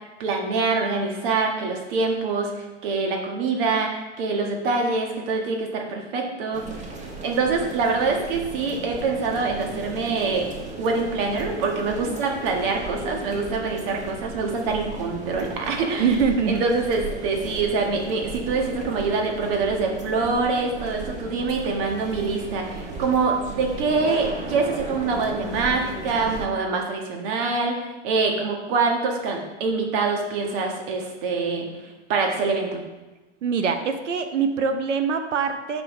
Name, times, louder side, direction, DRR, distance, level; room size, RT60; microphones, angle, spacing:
voice 1, 0.2-6.6 7.2-10.5 10.8-16.2 16.5-32.8, right 4 dB, 50° right, 2 dB, 1.6 m, -25 dB
sound 1, 6.5-26.4, right 2 dB, 20° right, 1.2 m, -36 dB
voice 2, 16.0-16.6 33.4-35.8, right 6 dB, 85° right, 8 dB, 0.9 m, -24 dB
8.6 x 5.5 x 3.2 m, 1.1 s
hypercardioid pair, 120°, 35 cm